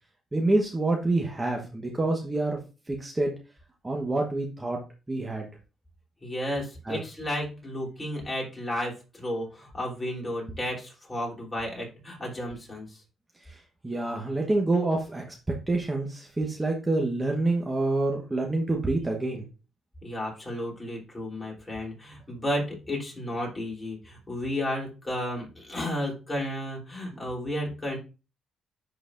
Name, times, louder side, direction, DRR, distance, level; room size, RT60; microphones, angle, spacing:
voice 1, 0.3-2.6 2.9-3.3 3.8-4.8 5.1-5.5 6.9-7.0 13.8-15.2 15.7-19.5, right 2 dB, 20° right, 0 dB, 1.1 m, -27 dB
voice 2, 6.2-13.0 20.0-28.0, left 1 dB, 20° left, -2 dB, 3.4 m, -33 dB
10.5 x 4.0 x 2.6 m, 0.31 s
cardioid pair, 90°, 0 cm